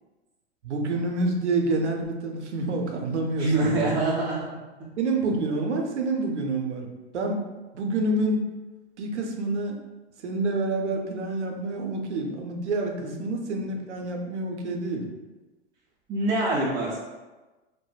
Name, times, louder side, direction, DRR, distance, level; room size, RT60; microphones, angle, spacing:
voice 1, 0.6-3.9 5.0-6.9 7.1-7.4 7.7-8.4 9.0-9.8 10.2-15.1, right 2 dB, 90° right, 2 dB, 0.6 m, -28 dB
voice 2, 3.4-4.4 13.0-13.2 16.1-17.0, right 2 dB, 15° right, -9 dB, 0.3 m, -25 dB
3.2 x 2.1 x 2.3 m, 1.2 s
hypercardioid pair, 115°, 34 cm